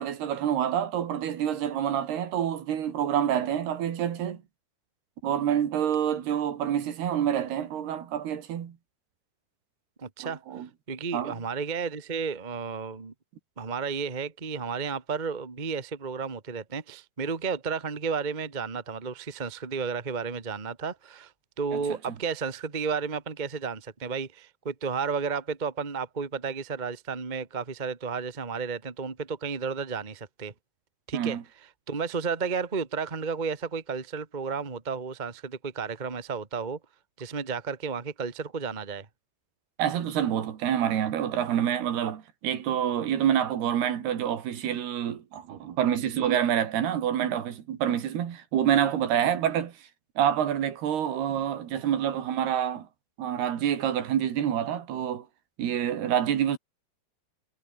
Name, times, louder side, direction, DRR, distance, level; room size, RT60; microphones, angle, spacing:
voice 1, 0.0-4.4 5.2-8.8 10.2-10.7 11.1-11.4 21.7-21.8 31.1-31.4 39.8-49.7 50.2-52.9 53.2-55.3 55.6-56.6, right 10 dB, 80° right, 4.4 m, -27 dB
voice 2, 10.0-10.4 10.9-13.1 13.6-21.3 21.6-30.5 31.1-31.4 31.9-36.8 37.2-39.1, right 5 dB, 55° right, 0.5 m, -32 dB
omnidirectional pair, 4.6 m